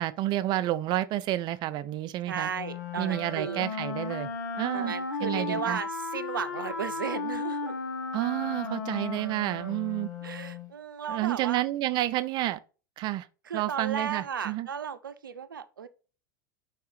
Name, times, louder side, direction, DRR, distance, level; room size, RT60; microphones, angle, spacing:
voice 1, 0.0-2.5 3.0-4.3 4.6-4.9 5.2-5.8 8.1-10.1 11.1-12.6 13.0-13.3 13.5-14.7, right 15 dB, 45° right, 0.6 m, -30 dB
voice 2, 2.3-3.6 4.7-7.7 10.2-11.6 13.5-15.9, right 7 dB, 85° right, 0.6 m, -35 dB
Wind instrument woodwind instrument, 2.5-10.7, left 4 dB, 75° left, 1.4 m, -35 dB
4.8 x 4.7 x 4.8 m
hypercardioid pair, 85°, 11 cm